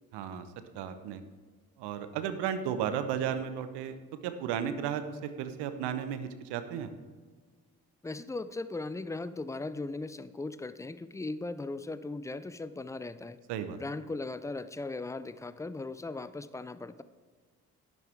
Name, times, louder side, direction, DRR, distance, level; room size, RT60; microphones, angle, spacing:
voice 1, 0.1-0.5 0.7-1.2 1.8-3.9 4.2-6.9 13.5-13.8, right 8 dB, 65° right, 10 dB, 1.0 m, -34 dB
voice 2, 8.0-13.4 13.8-17.0, left 3 dB, 5° left, 14 dB, 0.5 m, -38 dB
11.5 x 11.0 x 3.5 m, 1.4 s
hypercardioid pair, 45°, 43 cm